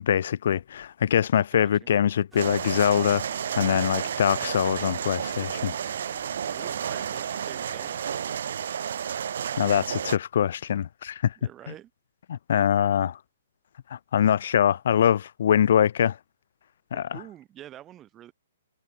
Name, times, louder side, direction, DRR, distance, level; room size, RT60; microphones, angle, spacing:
voice 1, 0.0-5.7 9.6-11.3 12.3-13.2 13.9-16.2 16.9-17.2, left 9 dB, 60° left, 0.3 m, -23 dB
voice 2, 1.6-1.9 6.5-8.1 11.4-11.9 16.9-18.3, right 12 dB, 20° right, 1.7 m, -46 dB
sound 1, 2.3-8.2, right 3 dB, 5° right, 2.7 m, -52 dB
sound 2, 2.4-10.2, right 8 dB, 60° right, 0.8 m, -31 dB
figure-of-eight pair, 125°, 0 cm